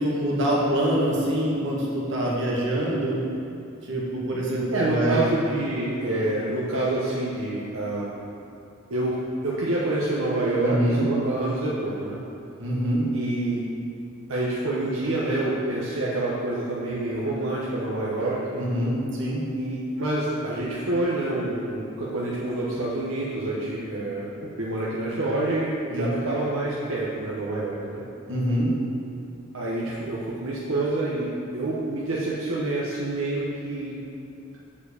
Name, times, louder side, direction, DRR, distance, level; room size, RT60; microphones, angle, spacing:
voice 1, 0.0-3.2 3.8-5.3 10.6-11.1 12.6-13.1 18.6-19.5 25.9-26.1 28.3-28.7, equal, 60° right, -4 dB, 1.8 m, -25 dB
voice 2, 4.7-8.1 8.9-9.2 9.4-12.2 13.1-13.6 14.3-18.6 19.6-24.3 24.6-28.0 29.5-33.9, right 2 dB, 85° right, -6 dB, 1.0 m, -27 dB
7.3 x 4.5 x 7.0 m, 2.8 s
head